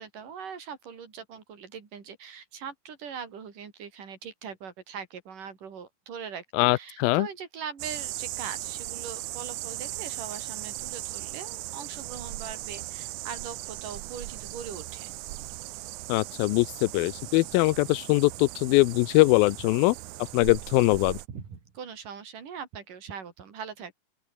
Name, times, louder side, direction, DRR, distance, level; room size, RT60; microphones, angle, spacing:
voice 1, 0.0-6.5 6.7-15.1 21.3-24.0, right 7 dB, 60° right, 5.4 m, -41 dB
voice 2, 6.5-7.3 16.1-20.0 20.3-21.2, left 21 dB, 80° left, 2.3 m, -22 dB
sound 1, 7.8-21.3, right 17 dB, 85° right, 1.7 m, -38 dB
open air
omnidirectional pair, 4.4 m